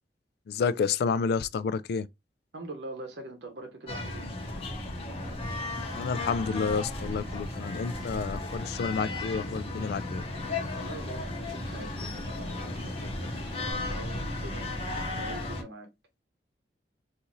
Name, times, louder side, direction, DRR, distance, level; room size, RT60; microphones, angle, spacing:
voice 1, 0.5-2.1 5.9-10.2, left 5 dB, 65° left, 0.3 m, -30 dB
voice 2, 2.5-4.3 10.7-14.8 15.1-15.9, right 2 dB, 70° right, 0.8 m, -44 dB
sound 1, 3.9-15.6, left 2 dB, 35° left, 0.9 m, -35 dB
Bird vocalization bird call bird song, 5.1-13.7, equal, ahead, 0.7 m, -51 dB
3.9 x 2.5 x 2.9 m
head